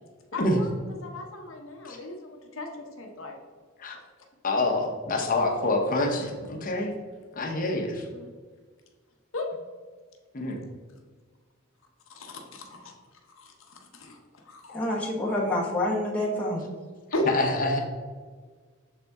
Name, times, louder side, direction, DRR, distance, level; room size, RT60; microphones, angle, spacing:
voice 1, 0.3-3.4 8.1-8.3 9.3-9.5 12.1-12.9 13.3-14.2 14.4-14.8 17.1-17.7, left 1 dB, 70° left, 1 dB, 0.9 m, -35 dB
voice 2, 4.4-6.9 7.3-8.0 10.3-10.6 17.3-17.8, left 2 dB, 40° left, 2 dB, 0.9 m, -26 dB
voice 3, 14.7-16.6, left 1 dB, 5° left, -4 dB, 1.0 m, -27 dB
6.6 x 4.0 x 3.5 m, 1.5 s
head